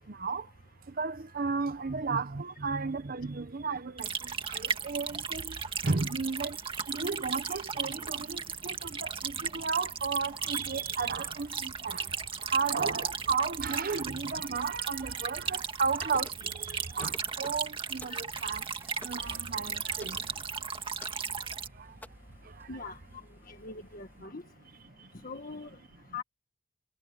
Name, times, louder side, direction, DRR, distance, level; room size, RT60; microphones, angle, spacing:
voice 1, 0.1-0.4 1.0-4.1 4.5-5.6 5.8-6.6 6.9-12.0 12.5-18.6 19.0-20.2 21.4-21.5, right 4 dB, 50° right, 0.8 m, -33 dB
sound 1, 4.0-21.7, right 6 dB, 30° right, 2.0 m, -36 dB
sound 2, 16.0-16.5 17.0-17.6 18.0-18.2 19.0-19.2 20.0-20.2 21.0-21.2 22.0-22.1, left 1 dB, 10° left, 2.5 m, -48 dB
Accelerating revving vroom, 17.8-24.3, equal, 15° right, 4.5 m, -55 dB
voice 2, 23.5-24.4 25.2-25.7 26.1-26.2, left 4 dB, 50° left, 1.7 m, -41 dB
head